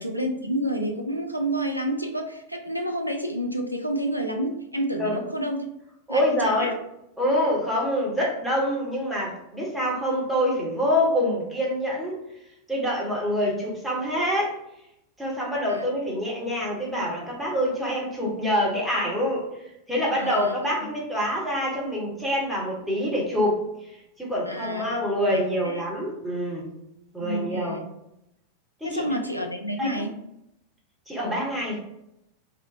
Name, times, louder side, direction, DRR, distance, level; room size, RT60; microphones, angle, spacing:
voice 1, 0.0-5.7 6.1-6.7 15.7-15.9 16.4-16.5 20.2-20.6 20.8-20.9 24.5-25.0 25.3-25.7 27.2-27.8 28.8-30.2, right 1 dB, 90° right, 3 dB, 0.3 m, -29 dB
voice 2, 6.1-6.8 7.2-12.2 12.7-14.5 15.2-19.5 19.9-23.6 24.2-26.7 27.1-27.8 28.8-29.1 29.8-29.9 31.1-31.8, equal, ahead, -5 dB, 0.9 m, -26 dB
2.5 x 2.1 x 2.6 m, 0.82 s
figure-of-eight pair, 90°, 0 cm